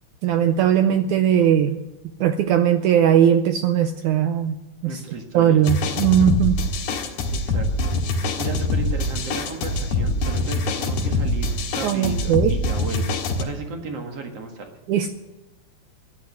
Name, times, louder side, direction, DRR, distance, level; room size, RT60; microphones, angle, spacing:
voice 1, 0.2-1.8 2.2-4.6 4.8-5.0 5.3-6.6 11.8-12.6 14.9-15.1, right 9 dB, 80° right, 8 dB, 1.8 m, -19 dB
voice 2, 4.8-5.7 7.3-14.7, right 4 dB, 50° right, 4 dB, 2.3 m, -35 dB
sound 1, 5.6-13.4, left 2 dB, 90° left, 3.7 m, -24 dB
13.0 x 11.0 x 9.5 m, 1.0 s
omnidirectional pair, 4.3 m